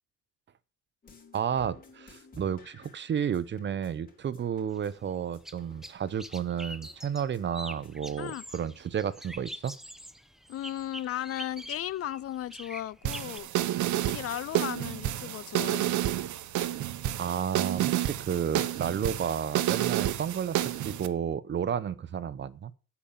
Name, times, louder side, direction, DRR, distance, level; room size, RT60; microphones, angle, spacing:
sound 1, 1.0-8.3, left 4 dB, 25° left, 3.4 m, -56 dB
voice 1, 1.3-9.7 17.2-22.7, right 8 dB, 35° right, 0.7 m, -32 dB
sound 2, 4.7-13.4, equal, ahead, 0.7 m, -45 dB
voice 2, 10.5-13.5 14.1-16.0, left 12 dB, 45° left, 0.5 m, -36 dB
sound 3, 13.1-21.1, right 13 dB, 65° right, 1.0 m, -30 dB
8.7 x 7.0 x 7.3 m
cardioid pair, 115°, 32 cm